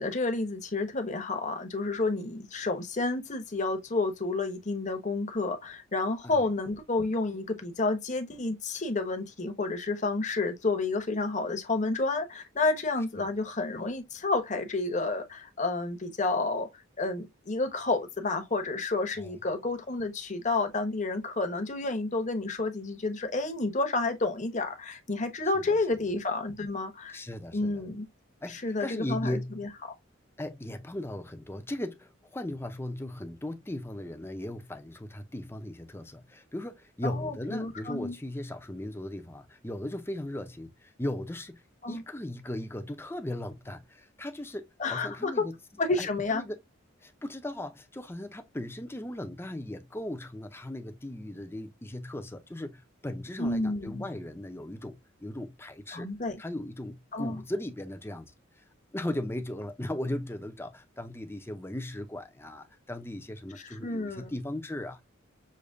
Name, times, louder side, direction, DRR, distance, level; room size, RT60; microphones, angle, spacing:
voice 1, 0.0-16.7 17.0-27.2 27.5-28.1 28.5-29.7 37.0-38.2 41.8-42.0 44.8-45.5 45.8-46.4 53.4-54.0 55.9-56.4 57.1-57.4 63.6-64.3, left 3 dB, 35° left, 1.0 m, -30 dB
voice 2, 27.1-27.8 28.4-29.6 30.4-41.6 41.9-45.6 46.0-46.6 47.0-56.1 56.4-58.3 58.9-65.0, left 1 dB, 10° left, 0.6 m, -37 dB
6.6 x 2.9 x 2.6 m
head